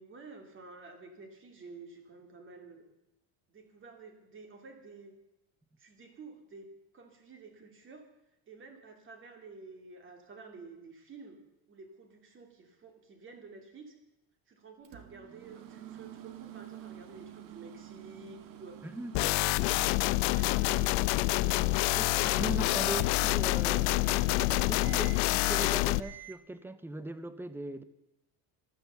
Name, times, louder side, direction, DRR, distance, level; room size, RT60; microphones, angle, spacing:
voice 1, 0.0-2.8 3.5-5.1 5.8-6.7 6.9-8.0 8.5-11.4 11.7-14.0 14.5-18.9 19.1-21.5, right 4 dB, 30° right, 5 dB, 2.8 m, -51 dB
Microwave oven, 14.8-26.4, right 12 dB, 50° right, 1.5 m, -49 dB
voice 2, 18.8-19.4 21.9-24.0 24.3-27.8, right 2 dB, 5° right, 13 dB, 0.5 m, -40 dB
sound 1, 19.1-26.0, left 21 dB, 80° left, 0.6 m, -27 dB
15.5 x 13.0 x 6.9 m, 0.91 s
cardioid pair, 170°, 42 cm